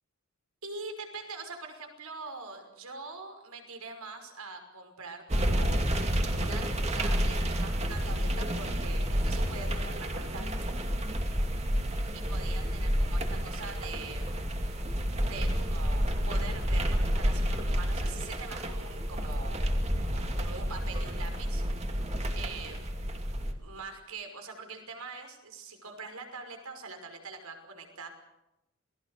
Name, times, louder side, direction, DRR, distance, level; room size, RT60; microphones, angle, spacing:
voice 1, 0.6-6.0 6.3-6.6 6.9-10.5 12.1-14.4 15.2-19.8 20.1-21.6 22.4-22.8 23.6-28.1, right 3 dB, 85° right, 5 dB, 5.7 m, -43 dB
sound 1, 5.3-23.5, equal, 30° right, 2.4 m, -30 dB
28.0 x 20.5 x 6.7 m, 0.91 s
head